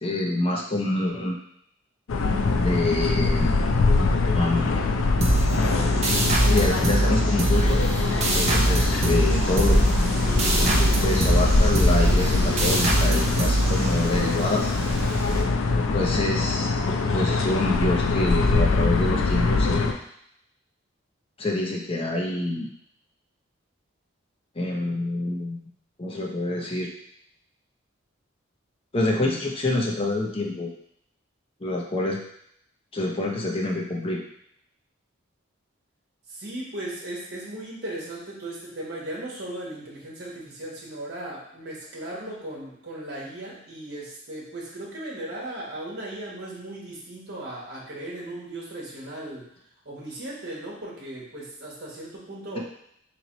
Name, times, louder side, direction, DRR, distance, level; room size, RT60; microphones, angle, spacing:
voice 1, 0.0-1.4 2.5-3.5 4.3-4.7 6.5-7.8 8.4-9.8 10.6-14.7 15.9-20.0 21.4-22.7 24.6-25.6 26.0-26.9 28.9-30.7 31.6-32.2 32.9-34.2, left 2 dB, 25° left, -1 dB, 0.6 m, -26 dB
sound 1, 2.1-19.9, left 3 dB, 75° left, 0.4 m, -24 dB
sound 2, 5.2-14.4, right 1 dB, 30° right, 0.5 m, -24 dB
Wind, 7.5-15.4, equal, ahead, 1.4 m, -28 dB
voice 2, 36.3-49.5 49.8-52.6, right 1 dB, 50° right, -5 dB, 1.2 m, -37 dB
3.9 x 3.1 x 3.0 m, 0.71 s
head